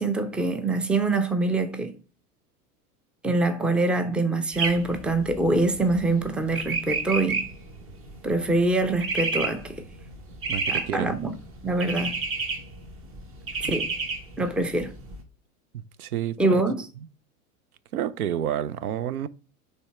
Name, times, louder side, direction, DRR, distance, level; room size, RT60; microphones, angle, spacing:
voice 1, 0.0-1.9 3.2-7.5 8.2-9.9 10.7-11.3 11.6-12.2 13.6-13.9 14.4-14.9 16.4-16.9, right 2 dB, ahead, 0.5 m, -24 dB
sound 1, 4.5-15.2, right 4 dB, 30° right, 1.2 m, -32 dB
voice 2, 10.5-11.1 13.6-13.7 16.0-16.6 17.9-19.3, right 10 dB, 75° right, 0.6 m, -29 dB
6.9 x 3.4 x 4.3 m
figure-of-eight pair, 90°, 45 cm